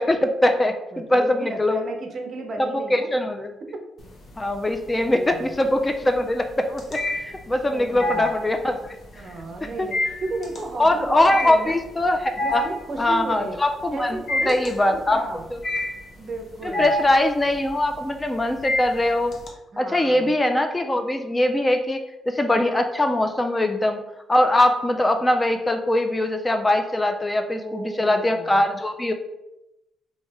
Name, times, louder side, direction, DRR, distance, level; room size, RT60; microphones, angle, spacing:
voice 1, 0.0-1.8 2.9-3.5 4.4-8.8 9.8-9.9 10.8-12.6 13.0-14.2 14.5-15.2 15.5-15.6 16.6-19.3 19.8-22.0 22.3-24.0 24.3-29.1, left 1 dB, 20° left, 6 dB, 0.3 m, -22 dB
voice 2, 0.9-3.1 3.7-3.8 5.0-5.5 7.6-8.4 9.1-11.8 12.4-13.6 13.9-15.5 16.2-16.9 19.7-20.3 27.4-28.6, right 2 dB, 45° right, 3 dB, 0.6 m, -34 dB
sound 1, 4.0-4.6 5.0-19.5, left 1 dB, 45° left, 0.8 m, -29 dB
3.1 x 2.7 x 3.3 m, 0.92 s
cardioid pair, 90°, 0 cm